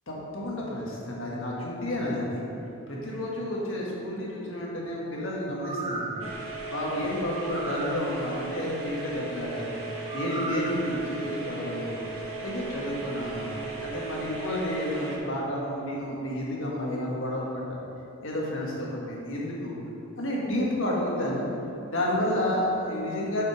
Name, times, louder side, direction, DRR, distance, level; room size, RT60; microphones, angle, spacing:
voice 1, 0.1-2.4 2.9-6.2 6.7-9.8 10.1-12.0 12.4-17.8 18.2-19.7 20.2-21.5 21.9-23.4, left 1 dB, 60° left, -4 dB, 1.5 m, -30 dB
sound 1, 5.5-6.3 7.3-8.0 10.1-10.8 11.2-11.3, right 3 dB, 20° right, 0.5 m, -35 dB
sound 2, 6.2-15.2, right 4 dB, 70° right, 1.4 m, -37 dB
7.5 x 5.2 x 4.9 m, 2.9 s
head